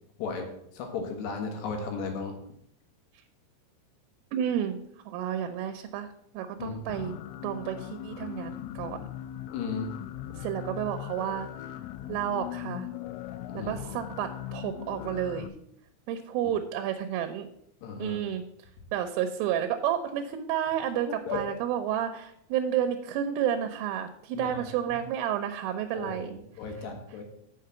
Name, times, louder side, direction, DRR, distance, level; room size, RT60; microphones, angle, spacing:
voice 1, 0.7-2.4 6.6-6.8 9.5-9.9 13.5-13.7 17.8-18.2 21.3-21.4 24.3-25.0 25.9-26.3 26.6-27.2, left 5 dB, 70° left, 3 dB, 3.1 m, -35 dB
voice 2, 4.3-4.8 5.1-6.1 6.3-7.1 7.4-9.0 10.4-11.5 12.1-12.9 13.5-15.5 16.1-17.5 18.0-18.4 18.9-26.4, right 10 dB, 85° right, 7 dB, 3.3 m, -31 dB
sound 1, 6.9-15.5, left 12 dB, 90° left, 3.2 m, -39 dB
6.7 x 6.3 x 7.5 m, 0.73 s
omnidirectional pair, 5.7 m